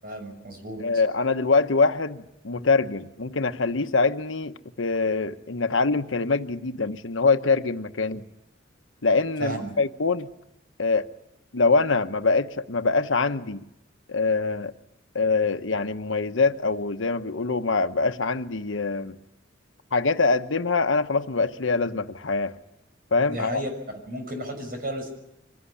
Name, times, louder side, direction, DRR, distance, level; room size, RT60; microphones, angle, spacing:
voice 1, 0.0-0.8 9.4-9.8 23.3-23.7 24.1-25.2, right 1 dB, 50° right, 6.4 m, -33 dB
voice 2, 0.8-8.2 9.0-10.3 10.8-11.1 11.5-13.6 14.1-14.7 15.1-19.2 19.9-22.5 23.1-23.6, left 4 dB, 85° left, 1.1 m, -24 dB
24.5 x 17.5 x 9.9 m
head